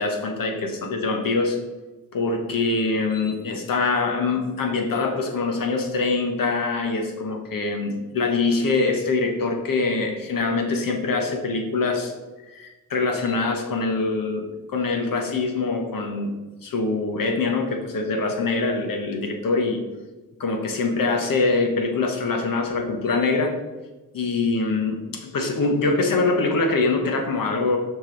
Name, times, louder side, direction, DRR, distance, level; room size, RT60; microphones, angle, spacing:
voice 1, 0.0-1.6 2.1-12.1 12.4-16.3 16.6-19.8 20.4-23.6 24.1-27.8, left 3 dB, 75° left, 3 dB, 1.2 m, -24 dB
6.2 x 5.4 x 4.0 m, 1.2 s
cardioid pair, 65°, 34 cm